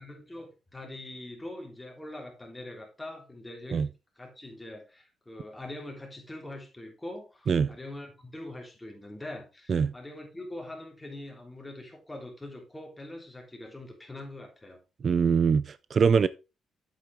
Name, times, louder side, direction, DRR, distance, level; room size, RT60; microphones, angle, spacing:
voice 1, 0.0-3.9 4.2-14.8, left 1 dB, 15° left, 3.4 m, -43 dB
voice 2, 15.0-16.3, right 6 dB, 45° right, 0.4 m, -23 dB
8.1 x 8.1 x 3.4 m
cardioid pair, 90°, 0 cm